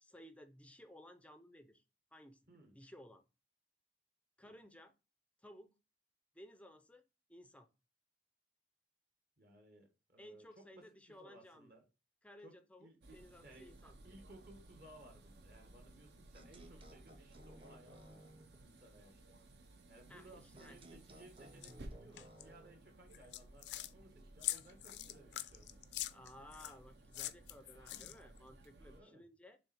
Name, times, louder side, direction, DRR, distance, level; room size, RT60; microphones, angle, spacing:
voice 1, 0.0-1.8 2.1-3.2 4.4-4.9 5.4-5.7 6.3-7.0 7.3-7.7 10.2-11.7 12.2-14.0 20.1-20.8 26.1-29.6, left 1 dB, 5° left, 0.4 m, -58 dB
voice 2, 9.4-11.8 12.4-13.7 14.0-18.3 18.6-19.4 19.9-25.8 27.9-28.2 28.8-29.3, right 1 dB, 55° right, 1.5 m, -61 dB
sound 1, 13.0-29.0, right 1 dB, 70° right, 0.8 m, -59 dB
sound 2, 16.3-18.6 20.5-22.8, right 1 dB, 30° right, 0.8 m, -58 dB
sound 3, 21.6-21.7 22.2-22.4 23.1-23.9 24.4-26.7 27.1-28.4, left 14 dB, 75° left, 0.4 m, -43 dB
7.0 x 3.2 x 4.4 m
head